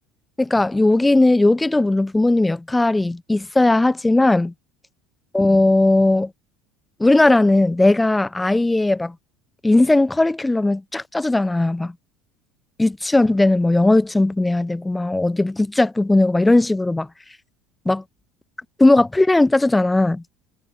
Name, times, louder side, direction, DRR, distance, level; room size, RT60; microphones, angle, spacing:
voice 1, 0.4-4.5 5.3-6.3 7.0-9.1 9.6-11.9 12.8-17.1 17.9-18.0 18.8-20.2, left 2 dB, 10° left, 0.5 m, -17 dB
figure-of-eight pair, 65°, 0 cm